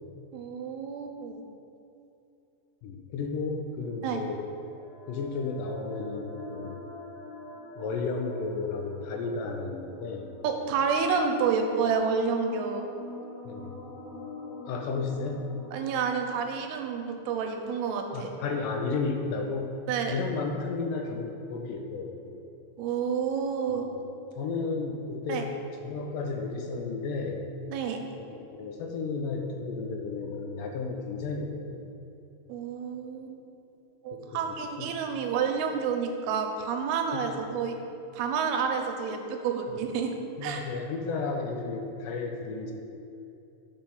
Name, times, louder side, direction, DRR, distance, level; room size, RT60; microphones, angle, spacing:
voice 1, 0.3-1.4 4.0-4.2 10.4-12.9 15.7-18.3 19.9-20.1 22.8-23.9 25.3-25.4 27.7-28.0 32.5-33.4 34.0-37.7 38.1-40.2 40.4-40.6, right 6 dB, 85° right, 4 dB, 2.7 m, -29 dB
voice 2, 2.8-4.4 5.1-6.8 7.8-10.3 13.4-13.8 14.7-15.4 18.1-19.8 20.1-22.4 23.7-24.0 24.4-25.5 25.8-27.4 28.3-31.8 34.1-34.9 37.1-37.3 39.7-39.8 40.4-42.7, left 4 dB, 80° left, 3 dB, 2.1 m, -33 dB
sound 1, 4.0-18.2, left 2 dB, 60° left, 3.0 m, -46 dB
9.0 x 5.1 x 5.5 m, 2.8 s
omnidirectional pair, 4.4 m